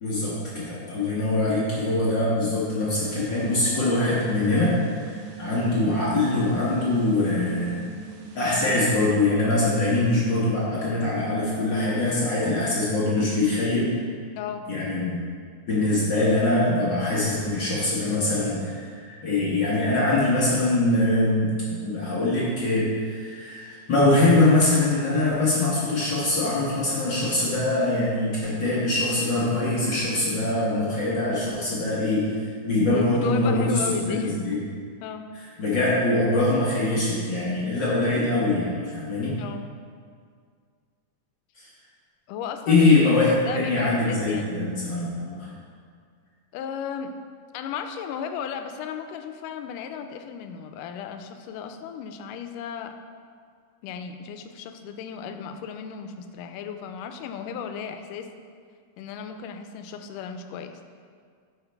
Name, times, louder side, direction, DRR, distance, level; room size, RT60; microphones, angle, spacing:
voice 1, 0.0-7.8 8.3-13.9 14.7-15.2 15.7-34.6 35.6-39.4 41.6-41.7 42.7-45.5, left 2 dB, 55° left, -7 dB, 1.4 m, -23 dB
sound 1, 2.9-9.0, right 4 dB, 85° right, 2.4 m, -42 dB
voice 2, 14.4-14.7 32.9-34.7 35.0-35.3 39.4-39.7 42.3-42.8 43.2-44.6 46.5-47.1 47.5-53.0 53.8-58.3 59.0-60.9, left 7 dB, 85° left, 7 dB, 2.1 m, -35 dB
9.4 x 6.3 x 3.4 m, 2.1 s
omnidirectional pair, 3.7 m